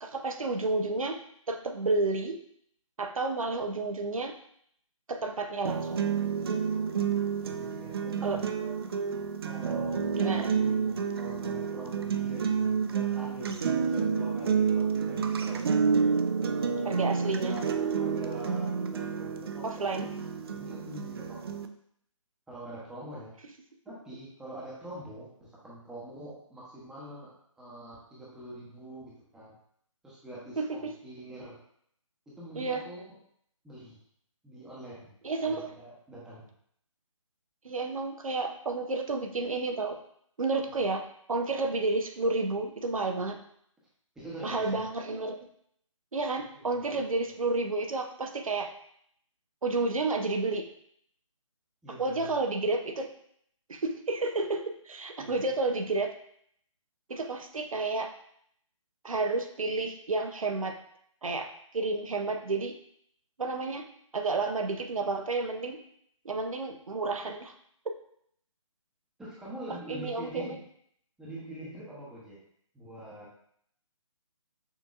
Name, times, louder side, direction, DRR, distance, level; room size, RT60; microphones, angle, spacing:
voice 1, 0.0-1.2 1.5-2.4 3.0-4.4 5.1-6.0 8.2-8.8 10.1-10.5 16.8-17.6 19.6-20.1 30.6-30.9 32.6-32.8 35.2-35.7 37.6-40.0 40.4-43.4 44.4-45.5 46.1-48.7 49.6-50.7 52.0-53.1 53.7-56.1 57.1-58.1 59.0-60.8 61.2-61.5 61.7-62.8 63.4-63.9 64.1-65.8 66.2-67.5 67.9-68.0 69.7-70.6, right 3 dB, 85° right, 4 dB, 0.6 m, -31 dB
sound 1, 5.7-21.7, right 6 dB, 45° right, 0.4 m, -29 dB
voice 2, 7.4-8.5 9.4-15.7 16.4-21.5 22.5-23.3 23.8-29.5 30.0-31.6 32.3-33.2 33.6-34.0 34.4-35.1 35.4-36.5 40.7-40.8 44.1-44.8 46.5-47.0 47.3-47.4 51.8-52.3 55.2-55.6 69.2-70.6 71.2-72.4 72.7-73.3, right 1 dB, 5° right, -7 dB, 0.8 m, -45 dB
6.2 x 2.7 x 2.5 m, 0.67 s
figure-of-eight pair, 145°, 17 cm